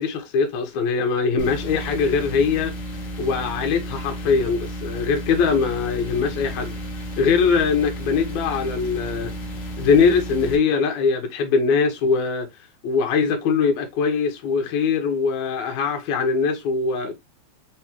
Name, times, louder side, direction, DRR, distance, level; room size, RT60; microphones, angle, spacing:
voice 1, 0.0-2.7 3.2-6.8 7.2-9.3 9.8-12.5 12.8-17.2, left 5 dB, 85° left, 2.3 m, -21 dB
sound 1, 1.4-10.6, right 1 dB, 50° left, 0.9 m, -33 dB
4.9 x 3.5 x 3.0 m
omnidirectional pair, 3.3 m